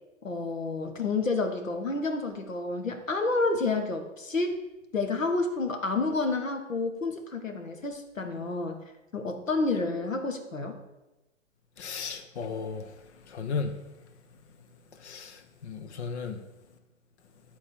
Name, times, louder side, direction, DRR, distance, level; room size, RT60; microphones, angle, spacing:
voice 1, 0.2-4.6 4.9-8.8 9.1-10.8, left 3 dB, 90° left, 5 dB, 1.4 m, -29 dB
voice 2, 11.8-12.8 13.3-13.8 15.0-16.4, left 5 dB, 60° left, 8 dB, 1.0 m, -35 dB
11.0 x 3.9 x 6.3 m, 1.1 s
figure-of-eight pair, 110°, 38 cm